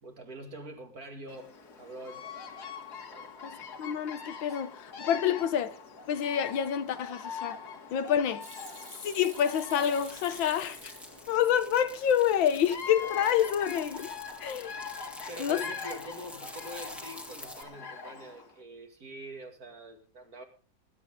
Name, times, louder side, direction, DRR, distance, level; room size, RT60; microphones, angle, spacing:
voice 1, 0.0-2.2 3.1-3.3 4.5-4.6 15.3-20.4, right 1 dB, 50° right, 2.7 m, -45 dB
Bird vocalization bird call bird song, 1.3-18.5, left 5 dB, 55° left, 2.1 m, -43 dB
voice 2, 3.4-5.8 6.1-7.6 7.9-8.4 9.0-10.9 11.3-14.1 14.4-14.8 15.4-15.6, left 9 dB, 90° left, 1.8 m, -28 dB
Hands / Sink (filling or washing), 8.4-11.6 12.0-12.7 13.0-13.5 13.8-14.2, right 1 dB, 15° right, 1.9 m, -49 dB
sound 1, 9.8-17.6, left 1 dB, ahead, 1.7 m, -48 dB
20.5 x 11.0 x 3.7 m
omnidirectional pair, 2.0 m